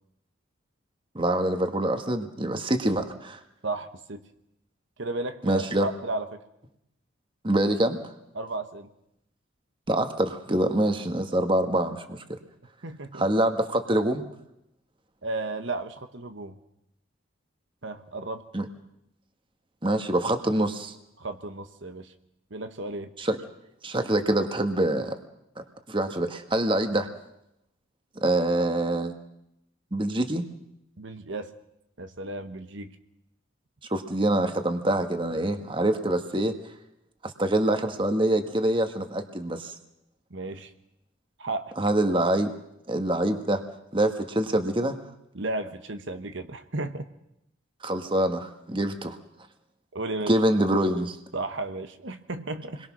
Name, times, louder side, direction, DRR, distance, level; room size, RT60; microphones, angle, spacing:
voice 1, 1.1-3.4 5.4-5.9 7.4-8.0 9.9-12.2 13.1-14.3 18.5-18.6 19.8-20.9 23.2-23.4 23.8-25.2 25.9-27.1 28.2-29.1 29.9-30.4 33.9-36.5 37.4-39.7 41.8-42.5 42.9-43.6 43.9-45.0 47.8-49.2 50.3-51.2, right 1 dB, 25° right, 7 dB, 1.6 m, -25 dB
voice 2, 3.6-4.2 5.0-6.4 8.3-8.9 12.8-13.2 15.2-16.6 17.8-18.4 21.2-22.1 22.5-23.1 31.0-31.5 32.0-32.9 40.3-40.7 41.4-41.7 45.3-47.0 49.9-50.4 51.3-52.8, right 2 dB, 65° right, 8 dB, 1.3 m, -34 dB
28.5 x 22.0 x 6.2 m, 0.81 s
head